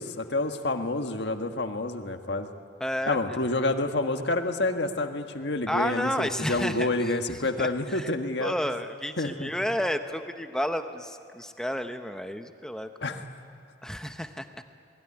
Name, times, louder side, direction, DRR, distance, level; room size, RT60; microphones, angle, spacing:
voice 1, 0.0-2.5 3.1-8.5 9.2-9.5 13.0-13.2, left 2 dB, 65° left, 5 dB, 1.6 m, -28 dB
voice 2, 2.8-3.4 5.7-8.1 8.4-13.2 13.8-14.6, equal, 5° left, 7 dB, 0.9 m, -32 dB
28.0 x 21.0 x 9.8 m, 2.5 s
head